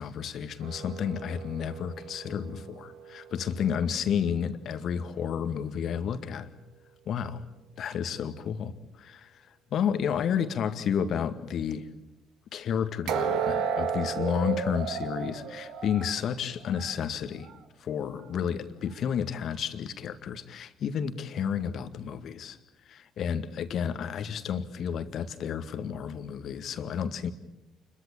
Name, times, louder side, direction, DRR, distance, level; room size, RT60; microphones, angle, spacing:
voice 1, 0.0-6.5 7.1-7.4 7.8-9.3 9.7-11.9 12.5-17.5 17.8-22.6 22.9-27.3, left 8 dB, 50° left, 10 dB, 2.0 m, -31 dB
sound 1, 0.6-3.7 13.1-17.0 17.4-17.6 18.2-18.3, right 7 dB, 60° right, 1.9 m, -34 dB
29.0 x 22.5 x 8.9 m, 0.89 s
figure-of-eight pair, 50°, 0 cm